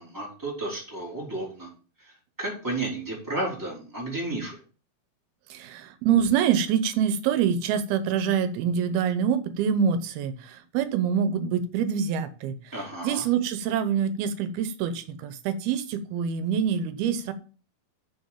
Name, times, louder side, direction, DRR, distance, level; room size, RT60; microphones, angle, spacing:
voice 1, 0.0-1.7 2.0-2.1 2.4-4.6 12.7-13.2, right 2 dB, 5° right, -4 dB, 4.4 m, -32 dB
voice 2, 5.5-12.6 13.0-17.3, right 7 dB, 85° right, 11 dB, 2.8 m, -25 dB
7.6 x 6.9 x 7.2 m, 0.37 s
omnidirectional pair, 4.3 m